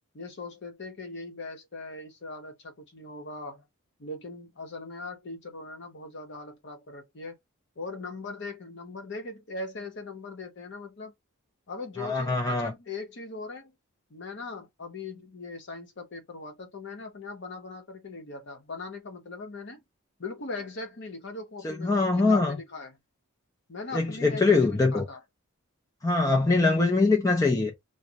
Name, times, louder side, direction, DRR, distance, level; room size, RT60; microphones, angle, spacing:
voice 1, 0.1-3.6 4.0-7.3 7.8-11.1 11.7-13.7 14.1-19.8 20.2-23.0 23.7-25.2, left 3 dB, 55° left, 0.7 m, -40 dB
voice 2, 12.0-12.7 21.6-22.6 23.9-25.0 26.0-27.7, left 3 dB, 15° left, 0.3 m, -23 dB
2.2 x 2.0 x 2.7 m
head